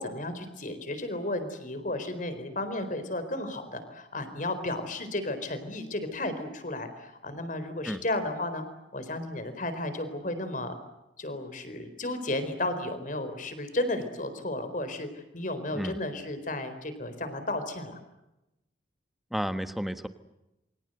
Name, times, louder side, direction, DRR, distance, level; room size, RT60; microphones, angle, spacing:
voice 1, 0.0-8.6 8.9-10.7 11.2-18.0, left 1 dB, 45° left, 10 dB, 4.3 m, -33 dB
voice 2, 19.3-20.1, equal, ahead, 9 dB, 1.3 m, -32 dB
28.0 x 24.5 x 7.9 m, 0.95 s
head